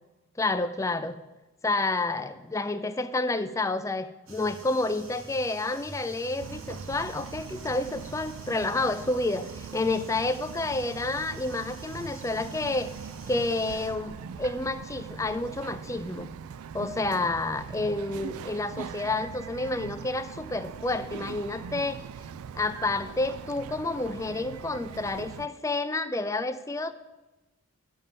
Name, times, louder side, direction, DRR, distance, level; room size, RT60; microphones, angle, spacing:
voice 1, 0.4-1.2 1.6-12.9 13.3-16.3 16.7-22.0 22.5-26.9, left 2 dB, 15° left, 11 dB, 0.4 m, -29 dB
sound 1, 4.3-13.9, right 2 dB, 70° right, 1.6 m, -48 dB
Bird vocalization bird call bird song, 6.4-25.5, right 7 dB, 85° right, 0.3 m, -41 dB
12.0 x 5.4 x 7.5 m, 1.1 s
head